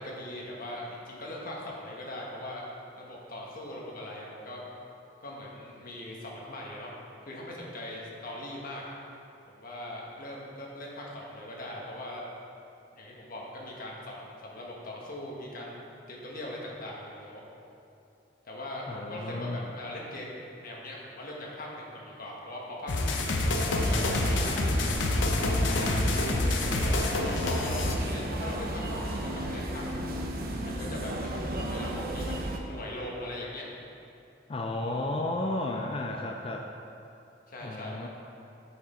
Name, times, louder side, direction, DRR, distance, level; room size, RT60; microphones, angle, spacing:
voice 1, 0.0-2.6 3.0-4.6 5.2-6.9 7.2-8.8 9.6-12.2 12.9-17.4 18.4-23.3 23.7-24.9 25.4-26.3 26.8-30.2 30.6-33.6 37.5-38.1, left 1 dB, 50° left, -3 dB, 1.4 m, -40 dB
voice 2, 18.9-19.7 34.5-36.7 37.6-38.1, left 2 dB, 30° left, 1 dB, 0.4 m, -33 dB
sound 1, 22.9-28.0, left 2 dB, 80° left, 0.7 m, -27 dB
sound 2, 23.6-32.6, right 1 dB, 55° right, 0.7 m, -34 dB
7.1 x 6.2 x 4.3 m, 2.7 s
head